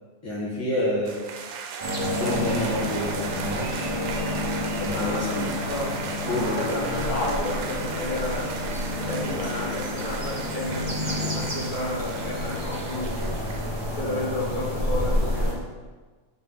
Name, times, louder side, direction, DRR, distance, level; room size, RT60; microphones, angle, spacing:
voice 1, 0.2-1.3 2.0-3.7 4.8-5.6 6.2-6.6 14.0-14.3, left 1 dB, 10° left, -7 dB, 1.5 m, -28 dB
sound 1, 1.0-14.3, right 5 dB, 85° right, 1.3 m, -37 dB
sound 2, 1.8-15.5, left 1 dB, 20° right, 0.9 m, -29 dB
sound 3, 2.6-9.7, right 1 dB, 60° right, 0.8 m, -41 dB
voice 2, 4.9-5.9 6.4-8.5 9.0-13.5 13.9-15.7, left 2 dB, 70° left, -5 dB, 2.0 m, -32 dB
7.9 x 3.9 x 3.8 m, 1.4 s
omnidirectional pair, 1.7 m